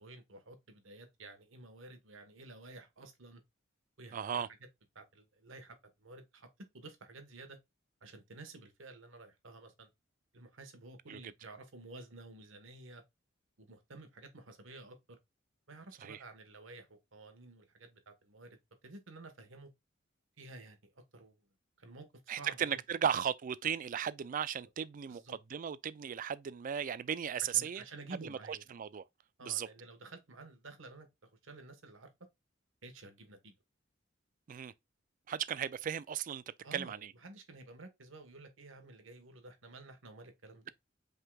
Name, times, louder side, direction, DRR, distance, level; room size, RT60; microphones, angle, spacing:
voice 1, 0.0-3.4 4.0-4.5 4.9-6.5 6.7-7.6 8.0-9.9 10.3-13.0 13.6-15.2 15.7-18.6 18.8-19.7 20.4-21.3 21.8-22.8 25.1-25.3 27.4-28.6 29.4-32.1 32.8-33.5 36.6-40.7, right 2 dB, 75° right, 1.3 m, -52 dB
voice 2, 4.1-4.5 11.1-11.2 16.0-16.2 22.3-25.2 25.5-27.8 28.2-29.0 29.4-29.7 34.5-34.7 35.3-36.4 36.7-37.1, right 8 dB, 40° right, 0.3 m, -36 dB
5.4 x 3.8 x 2.3 m
head